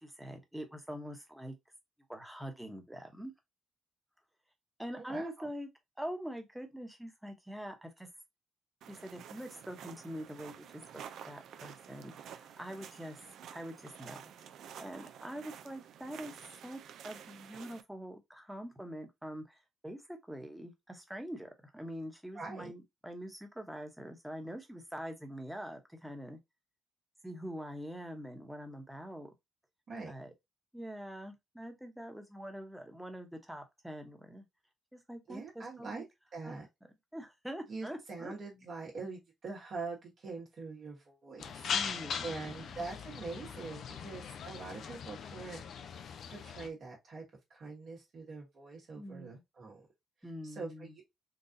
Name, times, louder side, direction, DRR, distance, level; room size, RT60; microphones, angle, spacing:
voice 1, 0.0-1.5 2.1-3.3 4.8-5.7 6.0-8.1 8.9-14.2 14.8-16.3 16.6-26.4 27.2-29.3 30.1-30.3 30.7-34.4 34.9-36.0 36.4-36.6 37.1-38.3 41.7-42.9 49.0-49.4 50.2-50.9, equal, 5° right, 1.0 m, -44 dB
voice 2, 5.0-5.5 22.3-22.7 29.9-30.1 35.3-36.0 36.3-36.6 37.7-45.6 46.3-47.2 47.5-49.9 50.4-50.9, right 4 dB, 55° right, 1.3 m, -44 dB
sound 1, 8.8-17.8, right 8 dB, 75° right, 0.4 m, -50 dB
sound 2, 41.4-46.7, left 7 dB, 65° left, 0.5 m, -40 dB
4.0 x 2.4 x 2.6 m
cardioid pair, 90°, 0 cm